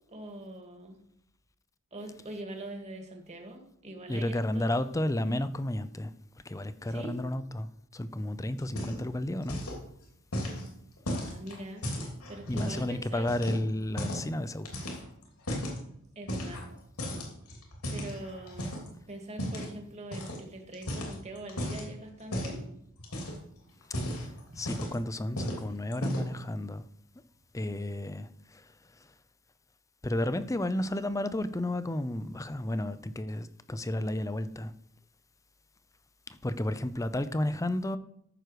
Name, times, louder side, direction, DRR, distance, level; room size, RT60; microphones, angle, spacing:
voice 1, 0.1-1.0 1.9-5.0 6.9-7.2 11.3-11.8 12.3-13.4 16.2-16.6 17.9-18.7 19.1-22.6 24.5-24.6, right 1 dB, 30° right, 3 dB, 1.9 m, -43 dB
voice 2, 4.1-6.1 6.5-7.7 7.9-9.6 12.5-14.7 24.6-26.8 27.5-28.3 30.0-34.7 36.4-38.0, left 1 dB, 15° left, 13 dB, 0.5 m, -32 dB
sound 1, 8.6-9.2 9.4-9.8 10.3-12.9 13.3-14.3 14.7-15.8 16.3-16.7 17.0-18.9 19.4-19.7 20.1-20.4 20.7-21.9 22.3-22.6 23.0-23.5 23.8-25.0 25.4-25.6 25.9-26.4, equal, 85° left, 3.0 m, -35 dB
14.0 x 6.4 x 4.8 m, 0.74 s
head